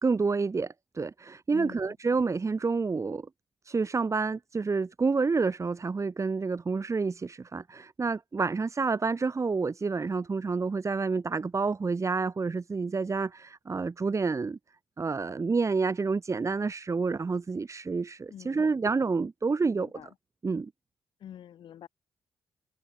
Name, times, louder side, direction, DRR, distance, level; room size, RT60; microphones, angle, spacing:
voice 1, 0.0-3.3 3.6-14.6 15.0-19.9 20.4-20.7, right 4 dB, 40° right, 3.0 m, -29 dB
voice 2, 1.5-1.9 18.3-18.7 19.7-20.1 21.2-21.9, left 10 dB, 80° left, 7.2 m, -46 dB
cardioid pair, 60°, 8 cm